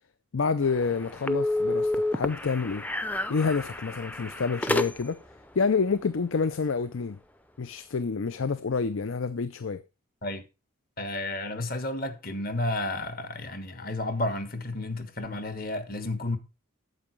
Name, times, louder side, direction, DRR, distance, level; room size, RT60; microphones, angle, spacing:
voice 1, 0.3-2.9 3.3-5.2 5.5-7.2 7.6-9.8, left 5 dB, 70° left, 0.5 m, -28 dB
sound 1, 0.6-5.3, left 1 dB, 5° left, 0.5 m, -30 dB
voice 2, 11.0-16.4, left 2 dB, 45° left, 1.4 m, -32 dB
9.2 x 7.7 x 4.6 m
head